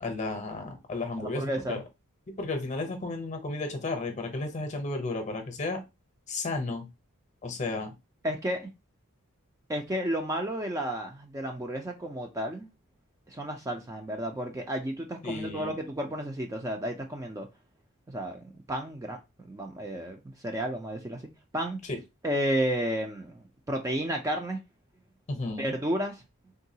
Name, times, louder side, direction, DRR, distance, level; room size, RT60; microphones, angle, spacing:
voice 1, 0.0-1.8 2.4-5.8 6.3-6.9 7.4-7.9 15.2-15.8 21.9-22.0 25.3-25.8, left 2 dB, 35° left, 0.7 m, -33 dB
voice 2, 1.2-1.8 8.2-8.7 9.7-12.7 13.3-17.5 18.1-21.2 21.5-21.8 22.2-24.6 25.6-26.2, equal, 15° right, 0.4 m, -32 dB
3.7 x 2.3 x 2.7 m
head